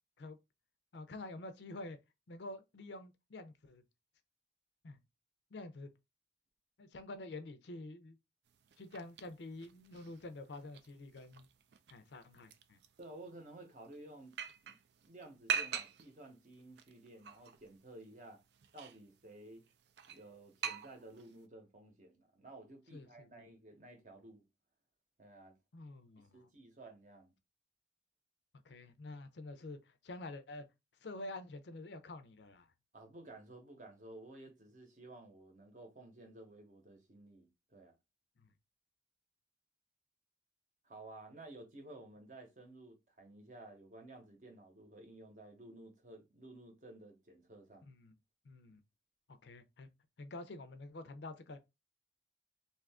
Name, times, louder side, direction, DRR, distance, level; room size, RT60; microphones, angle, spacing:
voice 1, 0.9-2.0 2.3-3.8 4.8-5.0 5.5-5.9 6.8-8.2 8.8-11.5 11.9-12.8 22.9-23.5 25.7-26.5 28.6-30.6 31.0-32.7 38.4-38.5 47.9-48.1 48.4-48.8 49.3-49.9 50.2-51.6, left 2 dB, 75° left, 0.5 m, -48 dB
sound 1, 8.5-21.5, right 7 dB, 70° right, 0.4 m, -45 dB
voice 2, 13.0-14.4 14.6-14.8 15.0-18.4 18.7-19.6 20.1-24.4 25.2-25.6 26.3-27.3 32.9-37.9 40.8-47.9, right 2 dB, 45° right, 0.8 m, -54 dB
2.7 x 2.4 x 3.4 m
head